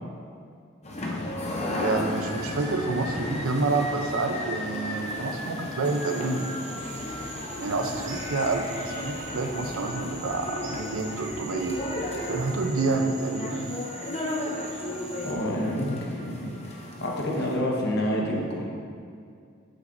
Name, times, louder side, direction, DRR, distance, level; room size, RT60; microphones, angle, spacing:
sound 1, 0.8-17.6, left 1 dB, 30° left, 0.7 m, -34 dB
voice 1, 1.7-6.7 7.6-11.8 12.3-13.7, right 3 dB, 80° right, 4 dB, 0.7 m, -28 dB
Cricket / Frog, 5.8-15.3, right 1 dB, 5° right, 1.1 m, -44 dB
sound 2, 6.8-12.2, right 1 dB, 60° right, 1.2 m, -43 dB
voice 2, 15.2-18.7, equal, 50° left, -2 dB, 1.2 m, -28 dB
8.2 x 7.9 x 2.7 m, 2.3 s
head